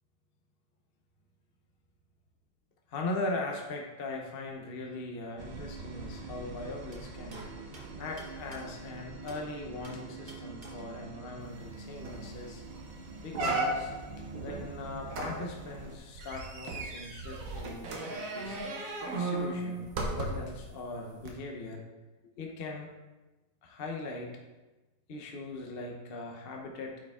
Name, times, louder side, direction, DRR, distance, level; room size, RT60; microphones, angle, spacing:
voice 1, 2.9-7.4 8.0-12.6 13.2-13.9 14.4-18.6 19.1-21.8 22.4-22.9 23.6-24.4 25.1-27.0, left 2 dB, 50° left, 1 dB, 0.7 m, -39 dB
sound 1, 5.4-16.0, right 4 dB, 75° right, 0.4 m, -45 dB
blast door knocking and banging, 6.9-9.5 9.8-11.0 12.9-13.0 13.3-15.0, right 2 dB, 35° right, 1.2 m, -48 dB
sound 2, 11.6-11.7 12.0-12.4 12.8-12.9 13.3-14.1 15.1-20.6 21.2-21.3, right 2 dB, 55° right, 1.3 m, -35 dB
8.9 x 4.9 x 3.5 m, 1.1 s
omnidirectional pair, 1.9 m